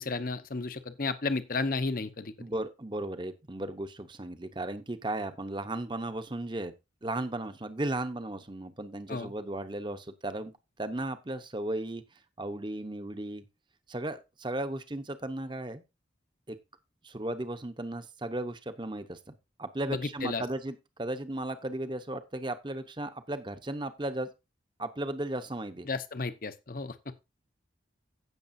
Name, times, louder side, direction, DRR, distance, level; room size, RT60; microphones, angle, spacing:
voice 1, 0.0-2.3 9.1-9.3 19.9-20.4 25.9-26.9, left 3 dB, 45° left, 0.8 m, -33 dB
voice 2, 2.4-6.7 7.0-10.5 10.8-12.0 12.4-13.4 13.9-15.8 16.5-16.6 17.0-19.3 19.6-24.3 24.8-25.9, right 1 dB, 25° right, 0.9 m, -35 dB
16.5 x 6.7 x 2.6 m
head